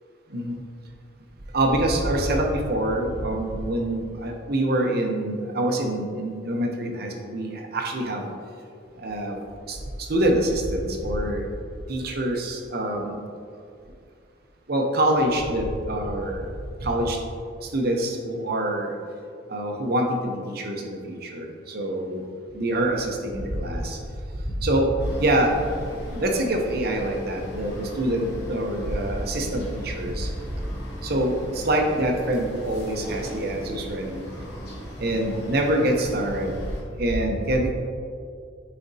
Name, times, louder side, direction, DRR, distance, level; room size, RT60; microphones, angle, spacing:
voice 1, 1.5-8.3 9.0-9.4 9.7-9.8 10.1-11.4 11.9-13.2 14.7-16.5 16.8-17.2 17.7-18.9 19.5-22.2 22.5-24.0 24.6-24.9 25.2-25.5 26.1-30.3 31.0-34.2 35.0-36.5 37.0-37.7, right 1 dB, 55° right, 2 dB, 0.8 m, -25 dB
sound 1, 25.0-36.8, equal, 55° left, 1.3 m, -37 dB
9.9 x 4.2 x 2.7 m, 2.3 s
head